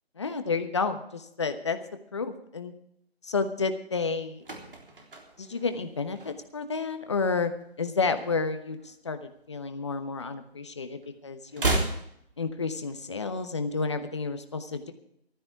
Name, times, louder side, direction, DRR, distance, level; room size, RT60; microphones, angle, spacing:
voice 1, 0.2-1.8 2.1-2.7 3.2-4.4 5.4-7.5 7.8-11.8 12.4-14.9, left 4 dB, 25° left, 9 dB, 1.1 m, -31 dB
sound 1, 4.1-6.7 7.0-7.3 7.6-9.1 9.3-10.7 11.0-13.1 13.3-13.4, right 2 dB, 55° right, 3.5 m, -34 dB
15.0 x 13.0 x 4.7 m, 0.73 s
figure-of-eight pair, 165°, 32 cm